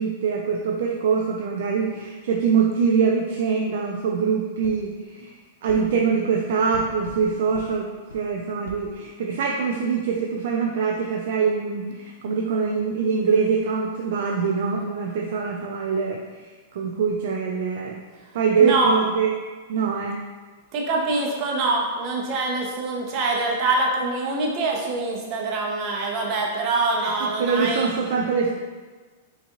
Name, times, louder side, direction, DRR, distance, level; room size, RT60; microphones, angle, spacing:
voice 1, 0.0-18.0 18.3-19.3 19.7-20.3 27.0-27.1 27.4-28.5, right 5 dB, 60° right, 0 dB, 0.3 m, -24 dB
sound 1, 4.6-4.8 5.7-5.8 6.7-7.2 7.5-7.7 8.1-8.2 8.7-8.8, left 1 dB, 80° left, 0.5 m, -39 dB
voice 2, 18.6-18.9 20.7-27.9, right 3 dB, 40° right, -1 dB, 0.8 m, -24 dB
5.0 x 2.6 x 2.5 m, 1.4 s
figure-of-eight pair, 100°, 0 cm